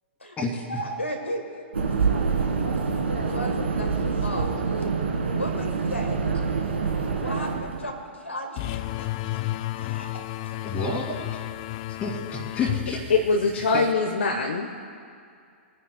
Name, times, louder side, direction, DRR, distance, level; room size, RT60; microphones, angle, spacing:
voice 1, 0.2-1.4 2.8-3.0 3.3-4.5 5.2-6.3 7.1-9.4 9.8-10.1 10.4-10.5, equal, 90° left, 2 dB, 1.5 m, -35 dB
sound 1, 1.7-8.0, right 5 dB, 70° right, 1.8 m, -26 dB
sound 2, 8.6-13.9, left 15 dB, 40° left, 0.4 m, -32 dB
voice 2, 10.6-11.4 12.0-13.0 13.5-13.8, left 2 dB, 20° left, 0 dB, 2.5 m, -30 dB
voice 3, 13.1-14.8, left 4 dB, 65° left, 2 dB, 0.9 m, -23 dB
25.5 x 9.4 x 2.3 m, 2.3 s
figure-of-eight pair, 110°, 7 cm